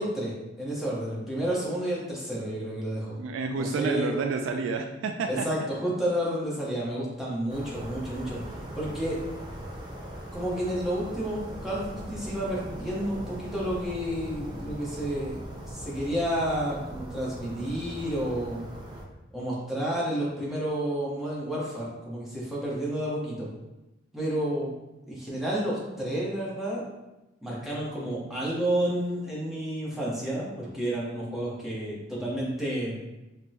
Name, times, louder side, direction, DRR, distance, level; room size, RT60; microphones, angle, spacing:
voice 1, 0.0-3.2 3.5-4.2 5.3-8.4 8.8-9.2 10.3-15.4 15.7-18.6 19.3-23.5 24.1-24.7 25.1-26.8 27.4-33.0, right 1 dB, ahead, -6 dB, 0.9 m, -30 dB
voice 2, 3.2-5.5, right 4 dB, 85° right, 5 dB, 0.3 m, -29 dB
sound 1, 7.5-19.0, right 1 dB, 25° right, 0.5 m, -40 dB
5.1 x 2.1 x 2.8 m, 0.99 s
head